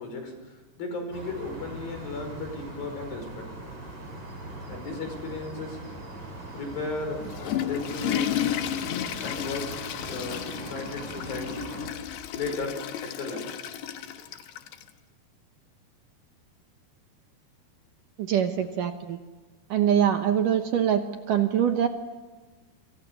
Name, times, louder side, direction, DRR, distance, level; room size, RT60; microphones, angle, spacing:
voice 1, 0.0-3.5 4.7-5.8 6.5-8.3 9.2-9.7 10.0-11.7 12.3-13.5, left 3 dB, 60° left, 5 dB, 6.9 m, -35 dB
sound 1, 1.1-11.9, right 2 dB, 40° right, 8.9 m, -41 dB
Water / Toilet flush, 7.1-14.9, left 11 dB, 85° left, 3.5 m, -32 dB
voice 2, 18.2-19.2 19.7-21.9, right 9 dB, 65° right, 6 dB, 2.3 m, -24 dB
29.5 x 27.0 x 7.0 m, 1.3 s
omnidirectional pair, 4.7 m